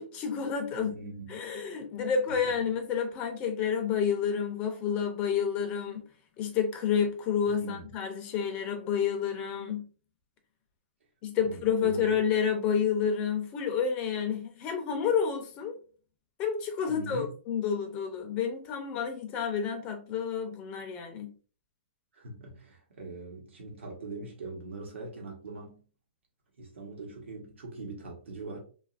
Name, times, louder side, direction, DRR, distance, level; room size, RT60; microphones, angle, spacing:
voice 1, 0.0-0.9 1.3-6.0 6.4-9.8 11.2-15.8 16.4-21.3, left 7 dB, 20° left, 0.4 m, -29 dB
voice 2, 0.7-1.3 2.4-2.5 7.6-7.9 11.4-12.2 16.9-17.3 22.1-25.8 26.6-28.6, right 3 dB, 85° right, 1.0 m, -41 dB
2.8 x 2.4 x 2.4 m
hypercardioid pair, 170°, 6 cm